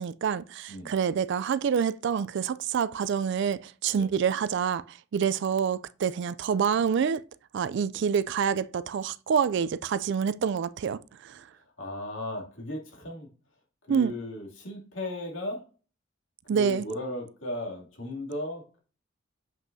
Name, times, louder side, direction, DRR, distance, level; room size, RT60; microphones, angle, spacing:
voice 1, 0.0-4.8 5.1-7.2 7.5-11.4 13.9-14.1 16.5-16.9, right 7 dB, 60° right, 0.3 m, -27 dB
voice 2, 11.8-13.3 13.9-15.6 16.5-18.8, left 1 dB, 70° left, 2.5 m, -36 dB
7.3 x 5.9 x 2.7 m
head